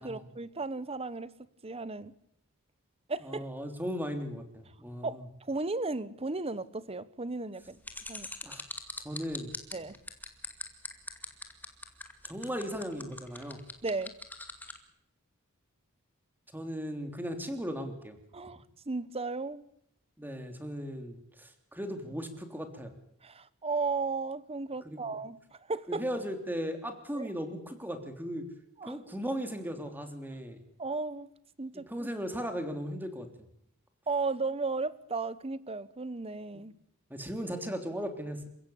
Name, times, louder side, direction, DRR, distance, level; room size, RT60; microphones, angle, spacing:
voice 1, 0.0-2.1 3.1-3.5 5.0-7.8 8.1-8.3 9.7-10.0 13.8-14.1 18.3-19.6 23.2-25.4 25.7-26.1 27.1-27.3 28.8-29.0 30.8-31.3 31.6-32.1 34.1-36.7, right 3 dB, 30° right, 16 dB, 1.0 m, -35 dB
voice 2, 3.2-5.2 8.4-8.6 9.0-9.5 12.3-13.6 16.5-18.2 20.2-22.9 24.8-25.2 25.9-28.4 28.8-30.6 31.9-33.3 37.1-38.5, equal, 10° right, 6 dB, 3.2 m, -37 dB
sound 1, 7.8-14.8, left 2 dB, 10° left, 2.3 m, -41 dB
28.0 x 16.0 x 8.7 m, 0.74 s
head